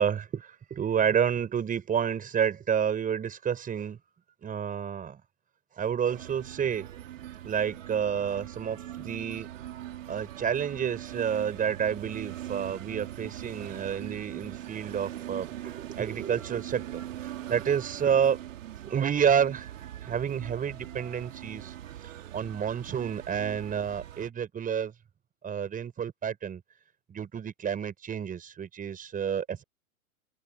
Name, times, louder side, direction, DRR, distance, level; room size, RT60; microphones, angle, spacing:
voice 1, 0.0-4.0 4.4-5.2 5.8-6.9 7.4-9.5 10.1-18.4 18.8-19.7 20.0-21.7 22.3-24.9 25.4-26.6 27.1-29.6, right 8 dB, 20° right, 6.2 m, -29 dB
sound 1, 6.1-24.3, right 12 dB, 65° right, 3.1 m, -41 dB
open air
hypercardioid pair, 115°, 42 cm